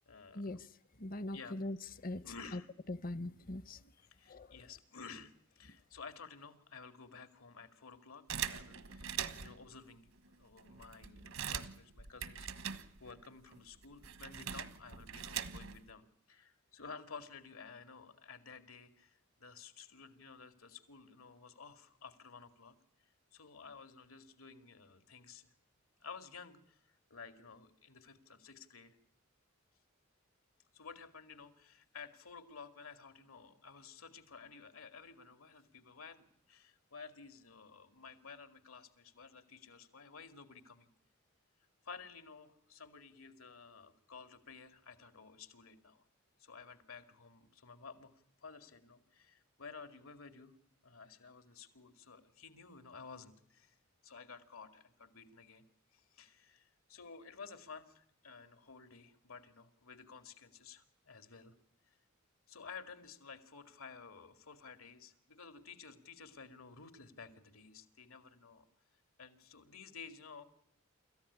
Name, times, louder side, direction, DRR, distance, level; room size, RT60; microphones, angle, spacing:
voice 1, 0.1-0.6 1.3-1.6 2.2-2.7 4.0-12.7 13.0-25.5 26.0-29.0 30.7-40.9 41.8-46.0 46.4-50.5 50.8-53.8 54.0-55.7 55.9-61.5 62.5-68.7 69.2-70.4, left 5 dB, 80° left, 2.4 m, -53 dB
voice 2, 1.0-1.8 2.0-2.2 2.9-3.8 4.3-4.5, left 1 dB, 40° left, 0.9 m, -41 dB
sound 1, 8.3-9.7 10.3-10.4 10.6-13.3 13.5-15.9, right 8 dB, 75° right, 1.4 m, -42 dB
26.5 x 14.5 x 9.9 m
head